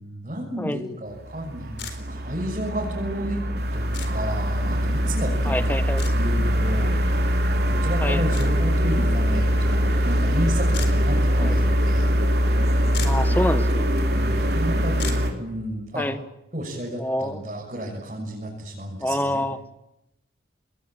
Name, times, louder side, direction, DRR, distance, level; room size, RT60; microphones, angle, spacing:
voice 1, 0.0-3.4 3.7-5.7 6.1-6.9 7.6-12.1 14.1-14.9 15.4-16.1 16.5-19.4, equal, 40° right, -3 dB, 6.8 m, -31 dB
sound 1, 1.3-15.3, equal, 55° right, 4.0 m, -22 dB
sound 2, 1.8-2.0 3.9-4.1 6.0-6.1 8.3-8.5 10.7-10.9 12.6-12.7 12.9-13.3 15.0-15.3, left 6 dB, 70° left, 4.5 m, -34 dB
voice 2, 5.4-6.1 8.0-8.2 11.4-11.6 13.0-13.9 15.9-16.2 17.0-17.4 19.0-19.6, left 1 dB, 10° left, 10 dB, 1.4 m, -27 dB
29.0 x 21.5 x 9.1 m, 0.89 s
head